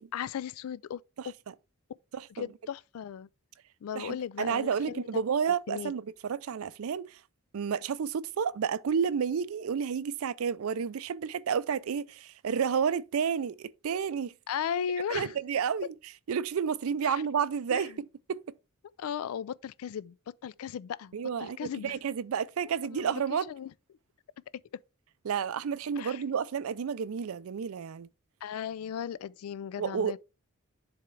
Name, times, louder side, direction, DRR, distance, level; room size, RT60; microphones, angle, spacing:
voice 1, 0.1-1.3 2.3-3.3 3.8-5.9 14.5-15.4 17.0-17.2 17.7-18.0 19.0-22.0 22.9-23.7 26.0-26.2 28.4-30.2, left 8 dB, 75° left, 0.3 m, -37 dB
voice 2, 2.1-2.5 4.0-7.2 7.5-14.3 15.1-15.9 16.3-17.9 18.3-18.4 21.1-23.5 25.3-28.1 29.8-30.1, right 7 dB, 75° right, 0.4 m, -31 dB
10.5 x 3.5 x 3.2 m
head